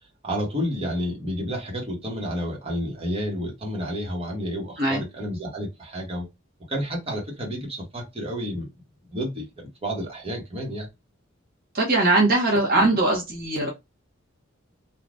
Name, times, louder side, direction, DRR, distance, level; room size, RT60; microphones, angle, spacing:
voice 1, 0.2-6.3 6.7-8.7 9.1-10.9, equal, 30° right, 1.2 m, -30 dB
voice 2, 11.7-13.7, right 2 dB, 50° right, 1.0 m, -21 dB
3.3 x 2.4 x 2.5 m
head